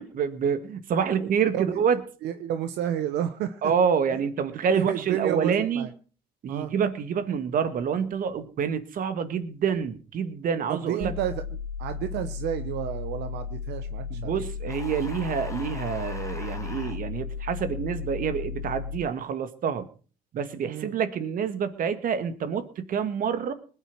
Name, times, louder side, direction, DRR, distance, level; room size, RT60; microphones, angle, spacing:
voice 1, 0.0-2.0 3.6-5.9 6.4-11.1 14.1-19.9 20.3-23.5, right 7 dB, 55° right, 11 dB, 2.1 m, -27 dB
voice 2, 2.2-3.6 4.7-5.9 6.5-6.7 10.7-11.4 11.8-14.4 20.6-20.9, right 11 dB, 80° right, 10 dB, 1.1 m, -30 dB
sound 1, 11.0-19.0, left 6 dB, 70° left, 1.8 m, -35 dB
sound 2, 14.7-17.0, left 3 dB, 20° left, 1.9 m, -42 dB
20.5 x 9.0 x 6.2 m, 0.39 s
cardioid pair, 110°, 17 cm